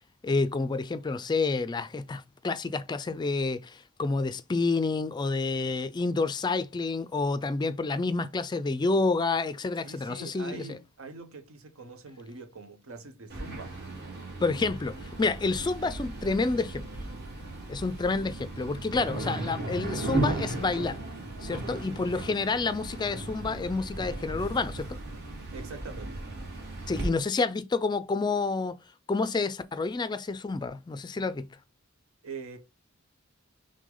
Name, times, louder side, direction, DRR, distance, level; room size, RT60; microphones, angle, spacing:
voice 1, 0.2-10.6 14.4-16.9 17.7-21.0 21.4-24.9 26.9-28.8 29.1-31.5, left 3 dB, 20° left, 0.3 m, -29 dB
voice 2, 9.8-13.7 25.5-26.2 32.2-32.6, right 4 dB, 85° right, 0.9 m, -43 dB
sound 1, 13.3-27.1, right 2 dB, 50° right, 1.7 m, -36 dB
6.0 x 2.1 x 3.8 m
head